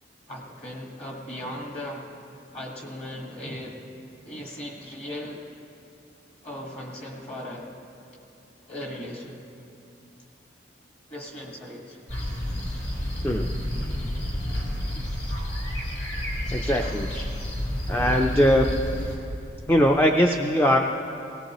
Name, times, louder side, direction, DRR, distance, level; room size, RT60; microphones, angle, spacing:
voice 1, 0.3-2.1 2.5-3.8 4.2-5.5 6.4-7.7 8.7-9.4 11.1-12.1 14.7-14.8, left 1 dB, 35° left, -1 dB, 1.5 m, -37 dB
sound 1, 12.1-19.2, equal, 60° left, 3.6 m, -30 dB
voice 2, 16.5-17.1 17.9-18.7 19.7-21.0, equal, 10° left, 2 dB, 0.4 m, -21 dB
18.0 x 18.0 x 3.0 m, 2.7 s
head